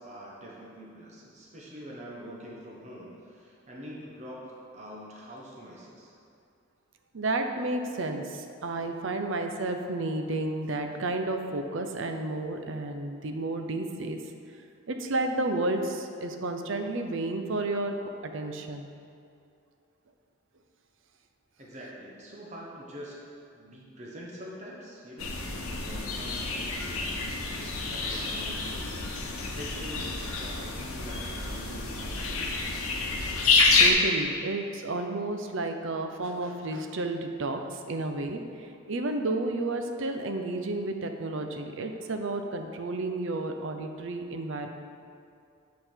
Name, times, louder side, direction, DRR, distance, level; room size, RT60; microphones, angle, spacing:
voice 1, 0.0-6.1 21.6-23.2 23.5-25.4 25.7-32.6, equal, 35° right, -4 dB, 1.1 m, -45 dB
voice 2, 7.1-14.2 14.9-18.0 18.2-18.9 33.8-38.4 38.9-44.7, right 2 dB, 60° right, 5 dB, 0.6 m, -31 dB
sound 1, 25.2-33.9, left 3 dB, 80° left, 0.9 m, -28 dB
8.7 x 5.3 x 4.5 m, 2.4 s
head